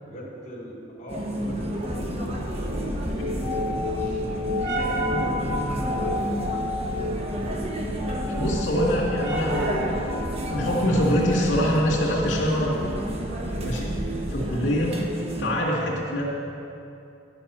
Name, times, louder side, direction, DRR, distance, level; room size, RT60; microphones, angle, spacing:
voice 1, 0.0-6.5 15.7-15.9, equal, 40° left, -6 dB, 2.6 m, -37 dB
sound 1, 1.1-15.5, right 1 dB, 35° right, 1.0 m, -31 dB
sound 2, 1.3-14.7, left 1 dB, 90° right, 2.5 m, -31 dB
voice 2, 8.3-10.0 10.4-12.7 13.6-15.0 15.4-16.2, equal, 85° left, -6 dB, 2.1 m, -24 dB
10.5 x 7.1 x 5.6 m, 2.7 s
head